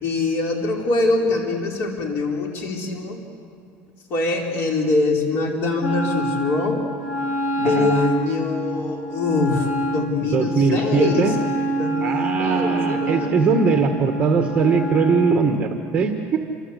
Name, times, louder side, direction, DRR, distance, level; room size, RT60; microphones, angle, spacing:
voice 1, 0.0-3.2 4.1-6.8 7.5-11.4 11.8-13.3, left 3 dB, 50° left, 0 dB, 4.2 m, -23 dB
Wind instrument woodwind instrument, 5.8-15.4, right 1 dB, 30° left, 3.0 m, -27 dB
voice 2, 10.2-11.4 12.0-16.4, right 5 dB, 25° right, 4 dB, 1.7 m, -20 dB
28.5 x 25.0 x 8.3 m, 2.3 s
cardioid pair, 150°, 5 cm